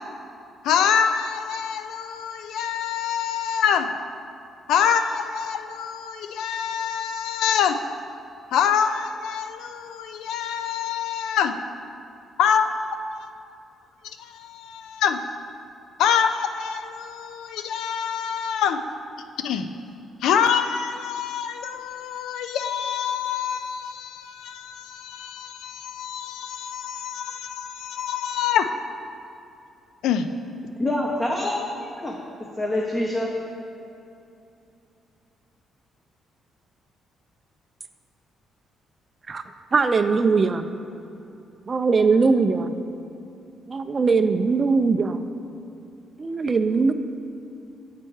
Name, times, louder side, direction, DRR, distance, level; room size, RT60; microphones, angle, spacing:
voice 1, 0.6-3.9 4.7-7.8 8.5-11.6 12.4-12.7 13.2-13.3 14.2-15.2 16.0-18.8 19.4-19.7 20.2-28.7 30.0-30.3, left 8 dB, 85° left, 0.3 m, -25 dB
voice 2, 30.8-33.3, left 1 dB, 20° left, 0.7 m, -26 dB
voice 3, 39.7-40.7 41.7-42.7 43.7-45.2 46.2-46.9, right 4 dB, 35° right, 0.4 m, -20 dB
7.6 x 4.4 x 4.7 m
cardioid pair, 90°, 0 cm